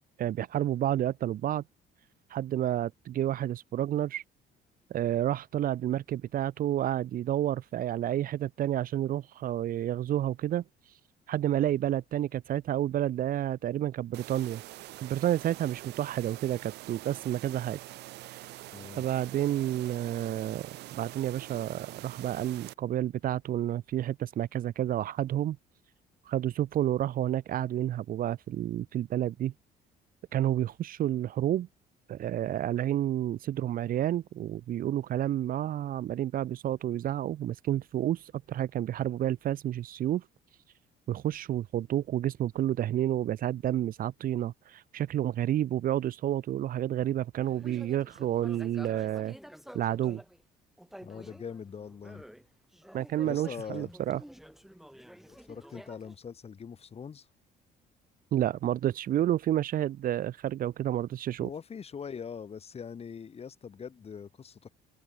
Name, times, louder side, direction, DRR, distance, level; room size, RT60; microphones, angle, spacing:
voice 1, 0.2-1.6 2.3-4.2 4.9-10.6 11.3-14.6 15.0-17.8 18.3-18.4 19.0-25.6 26.3-29.5 30.3-31.7 32.1-40.2 41.1-49.3 49.7-50.2 52.9-54.2 58.3-61.5, right 12 dB, 55° right, 1.0 m, -30 dB
sound 1, 14.1-22.7, right 18 dB, 80° right, 2.3 m, -45 dB
voice 2, 18.7-19.1 51.0-52.2 53.2-53.9 55.2-57.3 61.4-64.7, left 6 dB, 35° left, 5.2 m, -42 dB
sound 2, 47.4-50.4 50.8-52.5 52.7-56.2, equal, ahead, 4.1 m, -50 dB
open air
cardioid pair, 110°, 17 cm